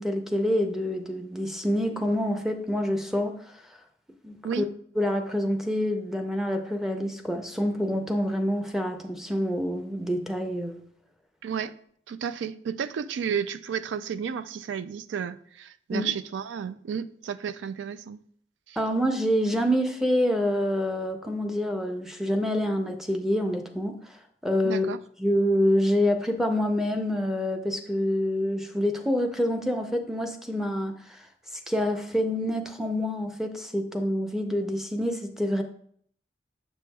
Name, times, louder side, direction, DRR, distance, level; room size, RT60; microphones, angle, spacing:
voice 1, 0.0-3.6 4.2-4.6 5.0-10.8 15.9-16.1 18.8-24.2 24.4-31.2 31.7-35.6, equal, ahead, 0.5 m, -27 dB
voice 2, 11.4-11.7 12.1-18.2 18.7-18.8 24.6-25.0, right 7 dB, 90° right, 0.3 m, -32 dB
6.8 x 6.2 x 2.3 m
head